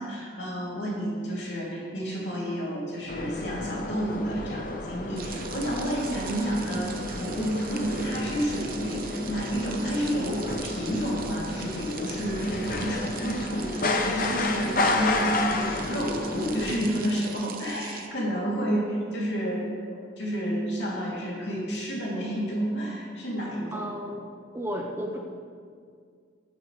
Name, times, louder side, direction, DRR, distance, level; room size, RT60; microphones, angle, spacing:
voice 1, 0.0-23.9, equal, 60° left, -4 dB, 2.9 m, -30 dB
sound 1, 3.1-16.8, left 2 dB, 45° left, 0.8 m, -31 dB
sound 2, 5.2-18.1, right 8 dB, 45° right, 0.7 m, -43 dB
voice 2, 23.7-24.3 24.5-25.2, equal, 15° right, 0 dB, 0.8 m, -33 dB
17.5 x 8.9 x 3.3 m, 2.1 s
head